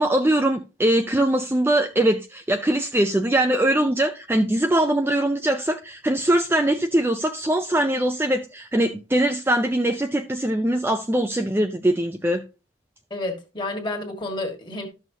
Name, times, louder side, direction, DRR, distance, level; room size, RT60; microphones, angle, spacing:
voice 1, 0.0-12.4, right 1 dB, 10° right, 0.4 m, -22 dB
voice 2, 13.1-14.9, left 2 dB, 20° left, 1.6 m, -30 dB
12.5 x 6.2 x 2.7 m
head